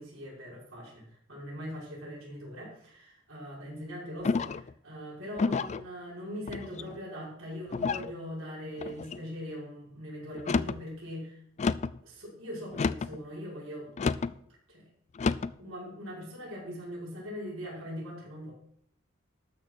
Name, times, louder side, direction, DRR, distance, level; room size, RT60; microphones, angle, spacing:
voice 1, 0.0-11.4 12.0-14.3 14.7-14.8 15.6-18.5, equal, 65° right, -5 dB, 5.8 m, -41 dB
sound 1, 4.2-4.7 5.4-5.8 6.5-7.0 7.7-8.1 8.8-9.2 10.3-10.8 11.6-12.0 12.7-13.2 14.0-14.3 15.2-15.6, left 4 dB, 30° left, 0.3 m, -30 dB
13.0 x 6.5 x 6.1 m, 0.69 s
head